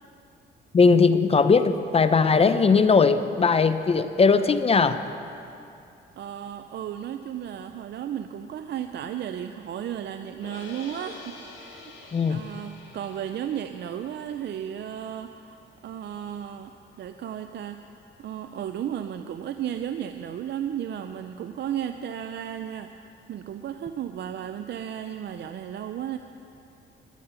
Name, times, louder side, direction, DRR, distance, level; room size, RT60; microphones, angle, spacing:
voice 1, 0.7-5.0 12.1-12.4, left 4 dB, 30° left, 11 dB, 0.6 m, -19 dB
voice 2, 6.2-17.8 18.2-26.2, right 9 dB, 60° right, 8 dB, 0.5 m, -34 dB
sound 1, 10.4-16.6, left 3 dB, 80° left, 2.0 m, -48 dB
14.5 x 12.0 x 5.7 m, 2.7 s
cardioid pair, 90°, 20 cm